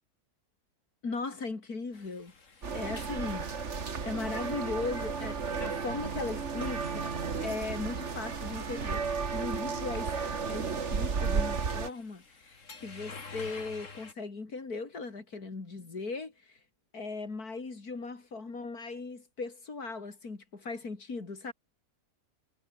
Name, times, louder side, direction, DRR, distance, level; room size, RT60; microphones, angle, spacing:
voice 1, 1.0-2.3 2.7-7.1 7.4-10.1 10.5-16.6 16.9-21.5, left 3 dB, 85° left, 3.9 m, -38 dB
sound 1, 1.9-14.1, left 4 dB, 55° left, 2.8 m, -51 dB
sound 2, 2.6-11.9, right 5 dB, 50° right, 2.0 m, -33 dB
omnidirectional pair, 1.6 m